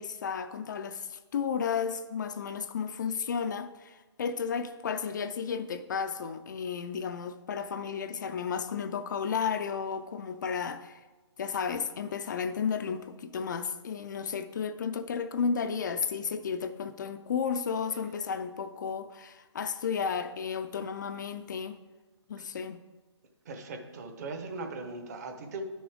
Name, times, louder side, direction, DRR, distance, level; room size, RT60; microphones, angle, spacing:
voice 1, 0.0-11.0 11.4-21.8 22.3-22.8, left 6 dB, 40° left, 0.4 m, -33 dB
voice 2, 23.5-25.6, right 3 dB, 35° right, 0.9 m, -39 dB
10.5 x 6.1 x 3.5 m
hypercardioid pair, 160°, 15 cm